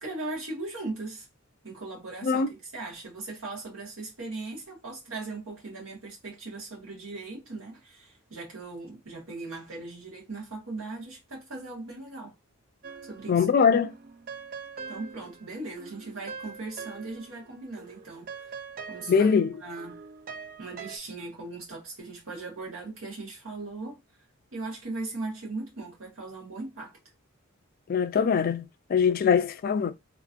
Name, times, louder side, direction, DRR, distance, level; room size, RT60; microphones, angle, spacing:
voice 1, 0.0-1.3 1.6-12.3 13.0-13.4 14.9-18.5 18.9-19.3 19.6-20.0 20.6-24.0 24.5-27.0, right 3 dB, 75° right, 1.4 m, -39 dB
sound 1, 12.8-13.5 13.8-17.5 17.8-21.0, right 5 dB, 45° right, 0.4 m, -43 dB
voice 2, 13.3-13.9 19.1-19.5 27.9-29.9, left 6 dB, 45° left, 0.3 m, -22 dB
3.0 x 2.5 x 2.5 m
head